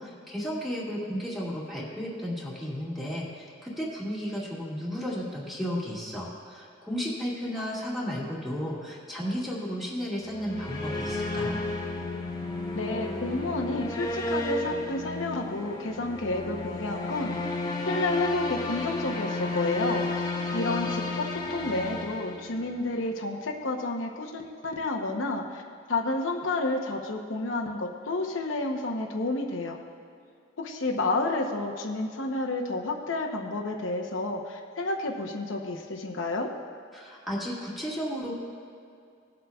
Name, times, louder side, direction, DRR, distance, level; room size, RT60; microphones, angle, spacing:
voice 1, 0.0-11.6 36.9-38.4, equal, ahead, -6 dB, 1.9 m, -33 dB
sound 1, 10.1-23.0, left 2 dB, 20° left, 0.9 m, -32 dB
voice 2, 12.7-17.5 17.8-20.0 20.5-25.6 25.9-29.8 30.6-36.5, left 2 dB, 75° left, 1 dB, 0.8 m, -30 dB
19.0 x 7.7 x 2.4 m, 2.4 s
head